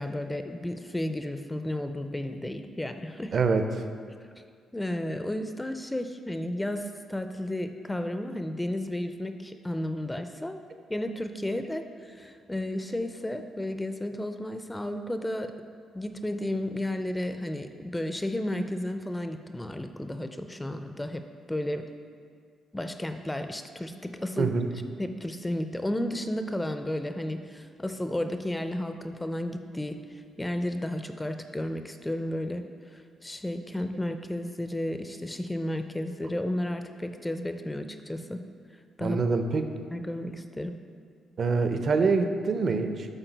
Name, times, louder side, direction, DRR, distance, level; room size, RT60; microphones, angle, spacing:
voice 1, 0.0-3.3 4.2-4.3 4.7-10.6 10.9-15.5 15.9-21.8 22.7-24.6 25.0-38.4 39.0-39.2 39.9-40.7, left 1 dB, 10° left, 8 dB, 0.3 m, -33 dB
voice 2, 3.3-3.7 24.4-24.7 39.0-39.7 41.4-43.1, right 4 dB, 50° right, 7 dB, 0.5 m, -25 dB
9.0 x 3.8 x 4.0 m, 2.1 s
cardioid pair, 90°, 0 cm